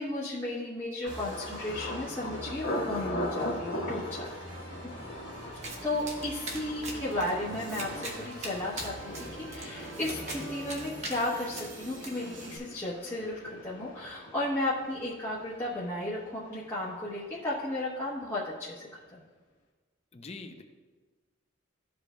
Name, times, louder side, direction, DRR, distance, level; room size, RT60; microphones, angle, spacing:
voice 1, 0.0-4.6 4.8-4.9 5.8-19.2, left 1 dB, 10° left, -9 dB, 1.0 m, -34 dB
Thunder, 1.0-16.8 17.1-17.7 18.1-18.4, left 1 dB, 75° left, 1.2 m, -41 dB
sound 1, 1.1-12.6, right 2 dB, 65° right, 1.0 m, -45 dB
Domestic sounds home sounds, 5.6-12.1, right 2 dB, 35° right, 1.0 m, -42 dB
voice 2, 6.4-7.0 20.1-20.6, left 3 dB, 30° left, 6 dB, 0.5 m, -46 dB
13.0 x 5.1 x 2.2 m, 1.4 s
head